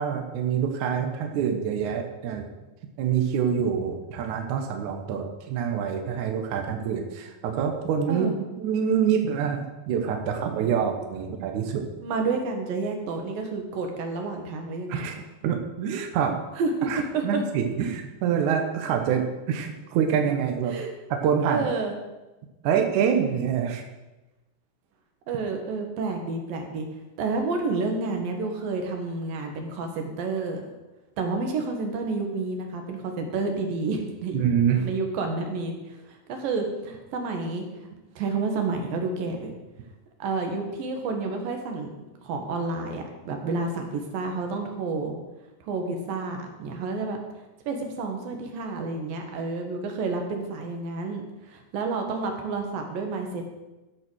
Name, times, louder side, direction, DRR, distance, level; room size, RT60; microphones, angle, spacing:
voice 1, 0.0-2.4 3.0-8.3 8.6-11.8 14.9-15.2 15.4-16.4 16.9-20.8 21.1-21.7 22.6-23.8 34.3-34.9, right 7 dB, 80° right, 4 dB, 1.7 m, -26 dB
voice 2, 12.0-15.1 16.6-17.4 20.7-20.9 21.4-21.9 25.3-26.9 27.2-30.6 31.2-34.5 34.8-37.9 38.2-39.5 40.2-41.9 42.2-45.2 45.6-47.2 47.7-53.5, right 3 dB, 65° right, 3 dB, 2.8 m, -30 dB
14.5 x 5.5 x 6.3 m, 1.1 s
omnidirectional pair, 5.1 m